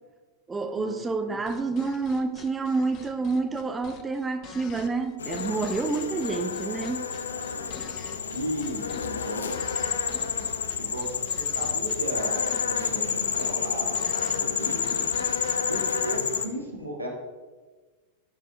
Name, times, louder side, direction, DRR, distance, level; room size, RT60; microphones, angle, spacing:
voice 1, 0.5-7.1, right 4 dB, 15° right, 7 dB, 0.5 m, -28 dB
sound 1, 1.5-15.9, left 8 dB, 35° left, 0.7 m, -46 dB
sound 2, 5.2-16.5, left 6 dB, 70° left, 0.5 m, -29 dB
voice 2, 7.3-7.7 8.3-9.6 10.4-10.5 10.7-15.0 15.7-17.1, right 1 dB, 85° right, -1 dB, 1.7 m, -35 dB
12.0 x 6.3 x 3.2 m, 1.4 s
figure-of-eight pair, 90°, 0 cm